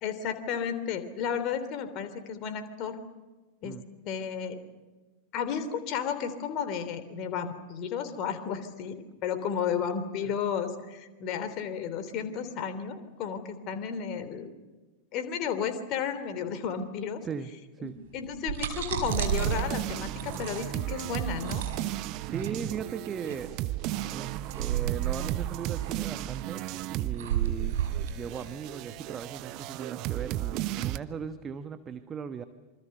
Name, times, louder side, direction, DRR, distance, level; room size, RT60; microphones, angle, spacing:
voice 1, 0.0-3.0 3.6-3.8 4.0-4.6 5.3-14.5 15.1-17.2 17.8-21.6, left 7 dB, 40° left, 10 dB, 3.3 m, -33 dB
voice 2, 17.2-18.0 22.3-23.5 24.0-26.6 26.9-32.4, right 6 dB, 20° right, 11 dB, 1.3 m, -38 dB
sound 1, 18.2-29.6, right 11 dB, 55° right, 4.3 m, -33 dB
sound 2, 19.1-27.3 27.5-31.0, right 15 dB, 40° right, 1.1 m, -34 dB
26.5 x 25.5 x 6.8 m, 1.2 s
figure-of-eight pair, 90°, 0 cm